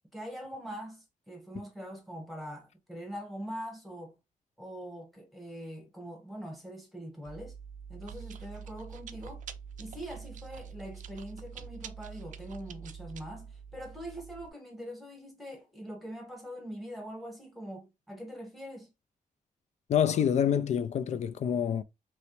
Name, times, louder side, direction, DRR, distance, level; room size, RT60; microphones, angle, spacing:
voice 1, 0.1-4.1 4.6-7.5 7.9-9.4 9.8-18.9, equal, ahead, 1.2 m, -43 dB
Chewing mastication, 7.2-14.5, right 7 dB, 65° right, 0.4 m, -45 dB
voice 2, 19.9-21.8, left 8 dB, 55° left, 0.4 m, -27 dB
3.2 x 3.0 x 3.0 m
wide cardioid pair, 135°, 14 cm